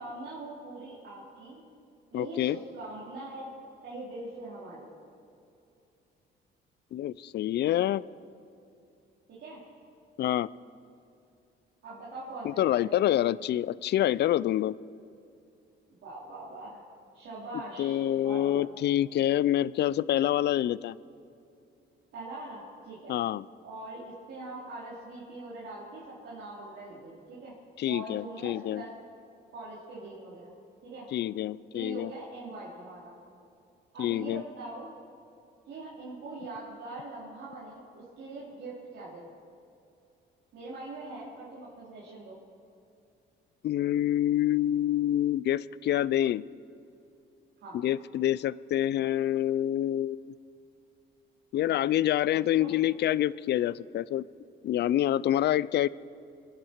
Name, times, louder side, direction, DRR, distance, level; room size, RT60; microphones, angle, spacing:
voice 1, 0.0-1.6 2.1-3.5 3.8-4.9 9.3-9.6 11.8-13.3 16.0-16.8 17.1-18.0 18.2-18.6 22.1-23.2 23.6-27.5 27.9-28.9 29.5-30.5 30.8-31.1 31.7-33.1 33.9-34.9 35.7-39.3 40.5-42.4 47.6-47.8 52.6-52.7, right 2 dB, 75° right, -8 dB, 3.8 m, -42 dB
voice 2, 2.1-2.6 6.9-8.0 10.2-10.5 12.4-14.8 17.8-21.0 23.1-23.5 27.8-28.8 31.1-32.1 34.0-34.4 43.6-46.4 47.7-50.3 51.5-54.2 54.6-55.9, left 12 dB, 60° left, 20 dB, 0.4 m, -27 dB
25.5 x 10.5 x 4.6 m, 2.6 s
cardioid pair, 90°, 20 cm